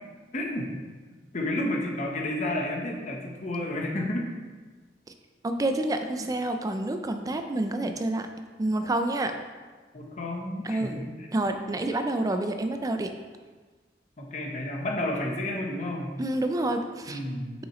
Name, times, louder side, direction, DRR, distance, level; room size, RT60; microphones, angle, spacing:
voice 1, 0.3-0.7 1.3-4.3 9.9-11.3 14.2-16.2 17.1-17.5, left 1 dB, 45° left, 0 dB, 1.0 m, -31 dB
voice 2, 5.4-8.3 8.6-9.3 10.6-11.1 11.3-13.1 16.2-17.2, right 1 dB, 20° right, 7 dB, 0.4 m, -28 dB
6.3 x 5.8 x 3.1 m, 1.4 s
head